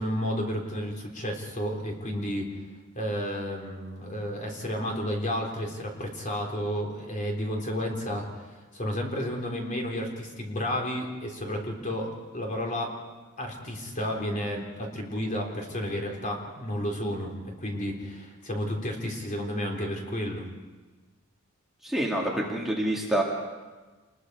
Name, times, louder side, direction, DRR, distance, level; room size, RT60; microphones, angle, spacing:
voice 1, 0.0-2.5 2.9-12.9 13.4-20.5, equal, 35° left, 1 dB, 3.7 m, -32 dB
voice 2, 21.8-23.2, right 1 dB, ahead, -3 dB, 2.2 m, -27 dB
28.0 x 21.0 x 4.8 m, 1.3 s
head